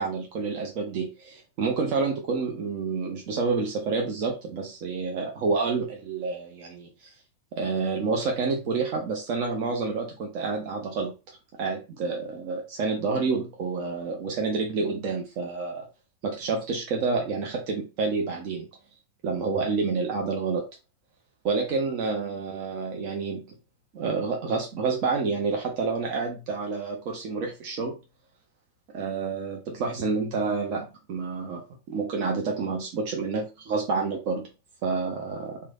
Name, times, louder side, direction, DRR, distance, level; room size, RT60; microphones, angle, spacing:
voice 1, 0.0-7.1 7.5-11.1 11.6-15.9 16.2-18.7 19.2-20.6 21.4-23.5 23.9-28.0 28.9-34.5 34.8-35.6, right 4 dB, 45° right, 1 dB, 0.6 m, -29 dB
3.1 x 2.2 x 2.4 m, 0.29 s
figure-of-eight pair, 90°, 0 cm